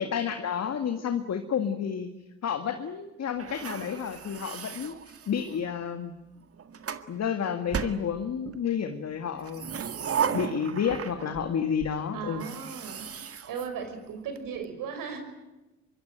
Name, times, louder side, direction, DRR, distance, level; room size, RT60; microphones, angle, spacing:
voice 1, 0.0-2.1 2.4-6.2 7.1-9.8 10.3-12.5, left 7 dB, 45° left, 7 dB, 2.0 m, -30 dB
sound 1, 3.4-5.7 6.4-7.1 7.7-8.6 9.4-11.5 11.8-11.9 12.3-14.4, right 7 dB, 40° right, 1.8 m, -35 dB
voice 2, 12.1-13.1 13.5-15.2, right 6 dB, 65° right, 7 dB, 5.6 m, -36 dB
25.5 x 23.5 x 9.1 m, 1.0 s
hypercardioid pair, 50°, 36 cm